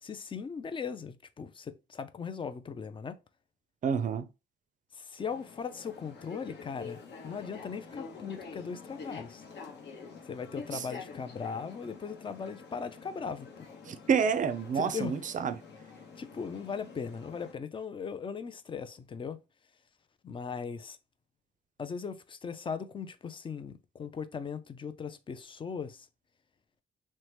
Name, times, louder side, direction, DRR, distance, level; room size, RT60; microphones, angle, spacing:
voice 1, 0.0-3.2 4.9-9.4 10.3-13.7 14.7-15.1 16.2-19.4 20.2-21.0 21.8-26.1, left 6 dB, 25° left, 0.3 m, -38 dB
voice 2, 3.8-4.3 10.7-10.9 13.9-15.6, right 6 dB, 40° right, 0.4 m, -28 dB
sound 1, 5.2-17.5, left 5 dB, 60° left, 0.8 m, -47 dB
2.9 x 2.1 x 3.1 m
cardioid pair, 90°, 20 cm